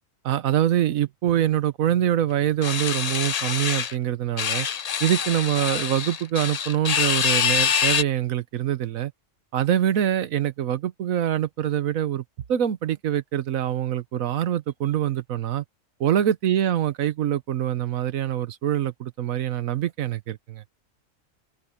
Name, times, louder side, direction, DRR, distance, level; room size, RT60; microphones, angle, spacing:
voice 1, 0.2-4.7 5.0-9.1 9.5-12.2 12.5-15.6 16.0-20.6, right 11 dB, 80° right, 1.3 m, -24 dB
sound 1, 2.6-3.9 4.4-8.0, left 8 dB, 80° left, 0.3 m, -25 dB
open air
omnidirectional pair, 1.4 m